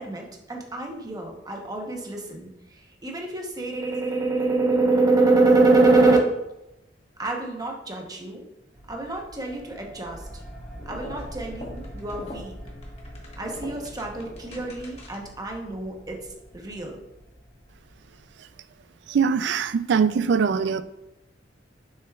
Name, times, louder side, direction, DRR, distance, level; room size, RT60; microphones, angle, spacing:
voice 1, 0.0-6.2 7.2-8.4 8.9-10.2 10.9-12.5 13.4-16.2 16.5-17.0, right 3 dB, 20° right, 1 dB, 0.9 m, -25 dB
sound 1, 8.7-18.9, equal, ahead, 1.4 m, -44 dB
sound 2, 10.8-15.4, left 1 dB, 35° left, 1.3 m, -43 dB
voice 2, 19.1-20.8, right 6 dB, 65° right, 13 dB, 0.3 m, -22 dB
6.7 x 6.5 x 2.4 m, 0.91 s
head